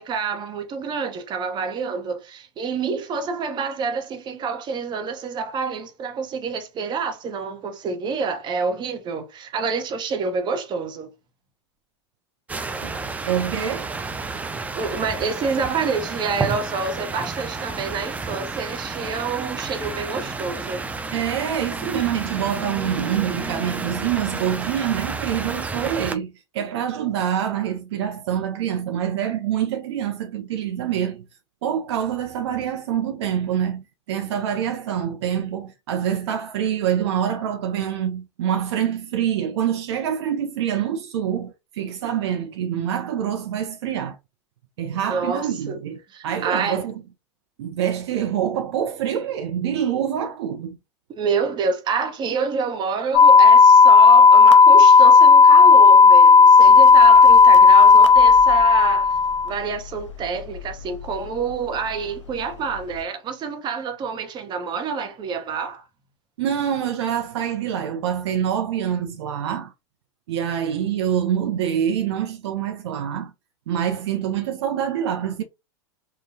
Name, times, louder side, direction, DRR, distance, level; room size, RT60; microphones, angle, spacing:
voice 1, 0.0-11.1 14.7-20.9 45.0-45.8 46.1-46.9 51.1-59.1 59.4-65.8, right 5 dB, 30° right, 0.8 m, -28 dB
sound 1, 12.5-26.2, right 4 dB, 10° right, 0.4 m, -31 dB
voice 2, 13.3-13.9 21.1-31.2 31.6-44.2 44.8-47.0 47.6-50.8 66.4-69.7 70.3-73.3 73.7-75.4, right 9 dB, 65° right, 0.6 m, -26 dB
sound 2, 53.1-59.5, left 5 dB, 85° left, 0.5 m, -11 dB
3.7 x 2.2 x 2.6 m
hypercardioid pair, 95°, 15 cm